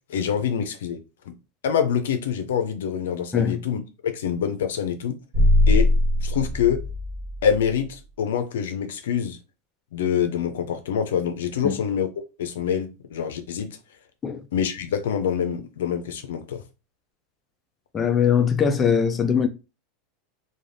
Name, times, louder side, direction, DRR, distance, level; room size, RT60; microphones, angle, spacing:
voice 1, 0.1-1.0 1.3-1.4 1.6-5.2 5.7-5.9 6.2-6.8 7.4-9.4 9.9-12.1 12.4-13.7 14.5-16.6, left 8 dB, 90° left, 0.5 m, -25 dB
sound 1, 5.3-7.8, left 1 dB, 40° right, 1.1 m, -21 dB
voice 2, 17.9-19.5, left 7 dB, 20° left, 0.4 m, -21 dB
2.5 x 2.3 x 3.2 m
supercardioid pair, 125°, 0 cm